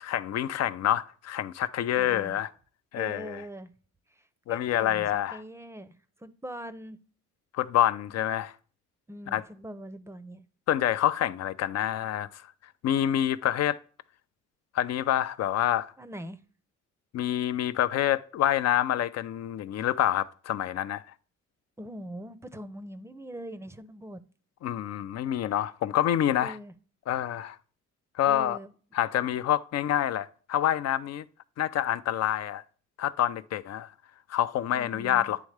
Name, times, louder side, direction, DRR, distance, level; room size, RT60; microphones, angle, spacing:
voice 1, 0.0-2.5 2.9-3.4 4.5-5.4 7.5-8.5 9.3-9.4 10.7-12.4 12.8-13.8 14.7-15.9 17.1-21.0 24.6-26.6 27.1-27.6 28.2-28.6 28.9-31.2 31.6-32.6 33.0-33.9 34.3-35.4, left 11 dB, 60° left, 0.5 m, -27 dB
voice 2, 2.0-2.4 3.0-3.7 4.1-7.0 9.1-10.4 16.0-16.4 21.8-24.2 26.4-26.7 28.3-28.7 34.7-35.3, right 1 dB, 10° right, 0.5 m, -42 dB
9.5 x 3.6 x 3.2 m
cardioid pair, 90°, 30 cm